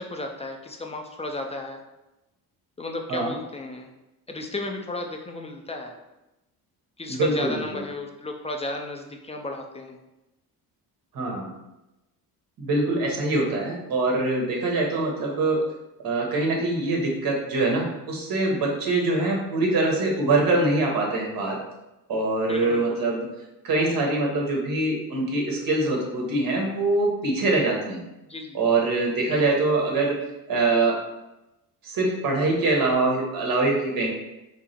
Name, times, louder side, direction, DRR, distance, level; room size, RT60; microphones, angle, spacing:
voice 1, 0.0-1.8 2.8-3.9 4.3-5.9 7.0-10.0 19.1-19.3 22.5-23.0 28.3-28.6 29.2-29.6, left 2 dB, 15° left, 3 dB, 0.5 m, -34 dB
voice 2, 7.1-7.8 11.1-11.5 12.6-15.6 16.0-21.6 22.1-23.2 23.6-28.0 28.5-30.2 30.5-31.0 31.8-34.1, right 2 dB, 60° right, -1 dB, 1.5 m, -24 dB
6.0 x 2.0 x 4.3 m, 0.97 s
cardioid pair, 105°, 40 cm